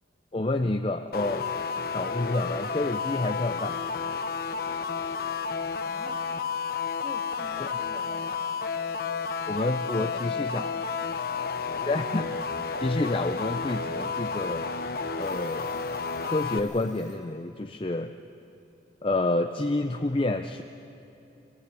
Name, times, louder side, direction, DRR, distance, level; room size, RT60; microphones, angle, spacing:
voice 1, 0.3-1.5 1.9-3.8 7.6-7.7 9.5-10.7 11.9-12.3 12.8-14.6 15.2-15.7 16.2-18.1 19.0-20.6, left 2 dB, 30° left, 7 dB, 0.6 m, -28 dB
sound 1, 1.1-16.6, left 5 dB, 55° left, 1.0 m, -31 dB
Alarm / Clock, 5.6-6.3 7.5-7.6 7.8-8.6 9.7-10.4 11.8-11.9 12.6-13.1 13.5-13.6 14.0-14.2 14.7-14.8 15.1-17.2, right 2 dB, 45° right, 5.2 m, -58 dB
voice 2, 5.8-6.2 7.0-8.4 9.9-10.8, equal, 10° left, 0 dB, 2.1 m, -46 dB
25.0 x 18.0 x 8.4 m, 2.9 s
head